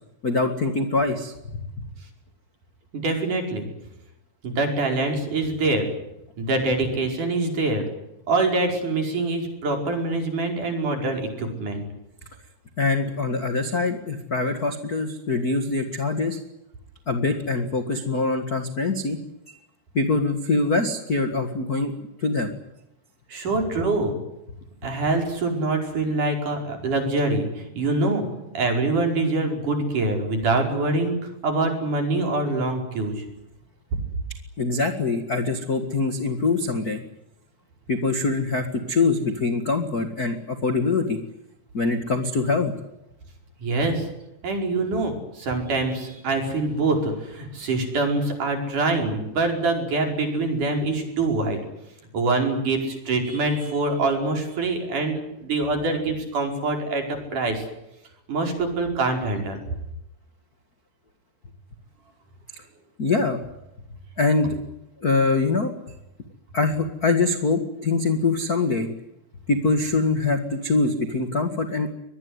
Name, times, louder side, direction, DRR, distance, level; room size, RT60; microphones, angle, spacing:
voice 1, 0.2-1.6 12.8-16.4 17.1-19.2 19.9-21.9 22.2-22.5 34.6-37.0 37.9-41.2 41.7-42.7 63.0-63.4 64.2-64.6 65.0-65.7 66.5-68.9 69.5-71.9, left 3 dB, 50° left, 7 dB, 1.0 m, -23 dB
voice 2, 2.9-3.7 4.4-5.9 6.4-7.8 8.3-11.8 23.3-24.2 24.8-31.2 31.4-33.2 43.6-44.1 44.4-51.6 52.1-57.6 58.3-59.6, right 2 dB, 50° right, 3 dB, 6.3 m, -24 dB
24.0 x 21.0 x 9.7 m, 0.87 s
omnidirectional pair, 4.8 m